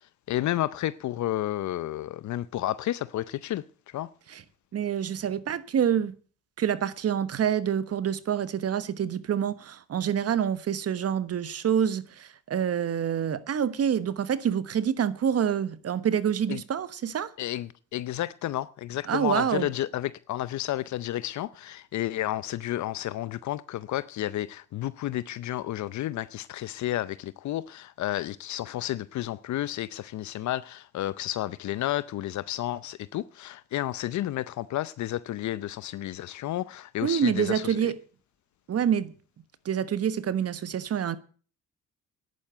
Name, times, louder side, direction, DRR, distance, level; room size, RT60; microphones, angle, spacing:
voice 1, 0.3-4.1 16.5-16.6 17.4-37.9, left 14 dB, 70° left, 0.7 m, -31 dB
voice 2, 4.7-6.1 6.6-17.3 19.1-19.7 37.0-37.9 38.7-39.1 39.6-41.2, right 8 dB, 55° right, 1.2 m, -27 dB
10.5 x 9.5 x 8.0 m
cardioid pair, 90°, 30 cm